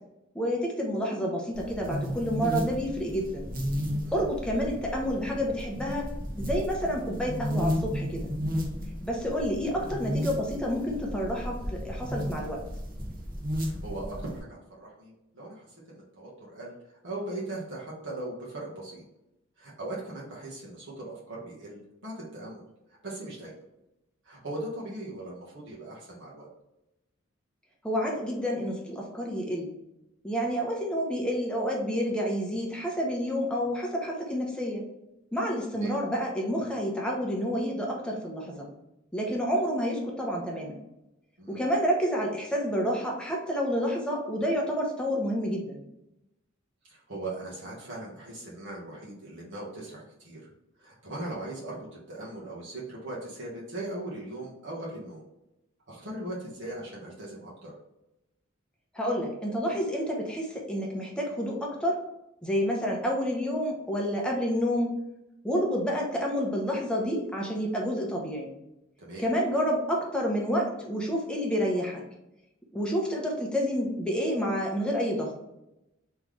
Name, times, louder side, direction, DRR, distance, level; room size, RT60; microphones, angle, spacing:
voice 1, 0.3-3.5 4.1-6.1 6.4-8.3 9.0-12.6 27.8-29.7 30.2-34.8 35.3-38.7 39.1-40.8 41.5-45.8 58.9-62.0 62.4-64.9 65.4-68.5 69.2-72.0 72.7-75.3, equal, 5° left, -2 dB, 0.9 m, -29 dB
sound 1, 1.5-14.4, equal, 45° right, 1.2 m, -33 dB
voice 2, 13.5-16.7 17.0-19.0 19.6-22.6 23.0-23.6 24.2-26.5 35.7-36.0 41.4-41.6 46.9-50.5 50.8-55.2 55.9-57.7 69.0-69.3, right 1 dB, 60° right, -5 dB, 1.4 m, -39 dB
3.8 x 3.4 x 3.2 m, 0.91 s
head